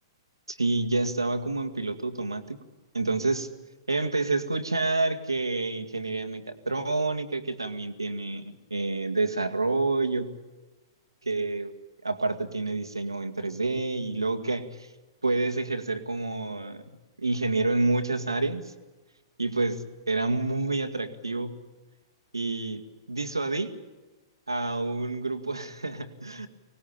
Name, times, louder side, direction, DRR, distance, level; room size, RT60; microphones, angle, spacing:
voice 1, 0.5-2.6 2.9-3.5 3.9-10.3 11.2-11.7 12.0-14.9 15.2-16.9 17.2-18.7 19.4-21.6 22.3-22.8 23.1-23.8 24.5-26.5, right 3 dB, 80° right, 7 dB, 2.1 m, -28 dB
24.5 x 19.5 x 8.9 m, 1.2 s
figure-of-eight pair, 110°, 2 cm